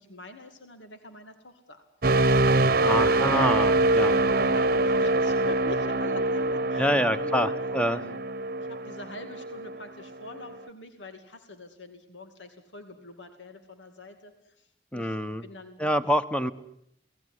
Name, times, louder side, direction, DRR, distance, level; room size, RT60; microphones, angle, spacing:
voice 1, 0.0-1.8 2.8-7.5 7.9-8.2 8.6-15.9, left 2 dB, 85° left, 7 dB, 2.5 m, -44 dB
sound 1, 2.0-9.8 10.3-10.5, right 2 dB, 50° right, 1.0 m, -24 dB
voice 2, 2.8-4.1 6.8-8.0 14.9-15.4 15.8-16.5, equal, 5° left, 11 dB, 1.2 m, -26 dB
28.5 x 18.5 x 9.9 m, 0.75 s
head